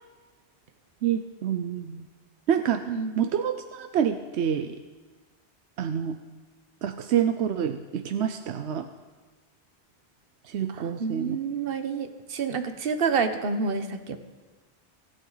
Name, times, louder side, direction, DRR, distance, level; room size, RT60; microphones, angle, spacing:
voice 1, 1.0-2.1 2.5-4.8 5.8-6.2 6.8-8.9 10.5-11.4, right 9 dB, 85° right, 8 dB, 1.0 m, -27 dB
voice 2, 2.9-3.2 10.7-14.2, right 5 dB, 60° right, 8 dB, 1.2 m, -28 dB
23.5 x 11.0 x 4.0 m, 1.3 s
omnidirectional pair, 1.1 m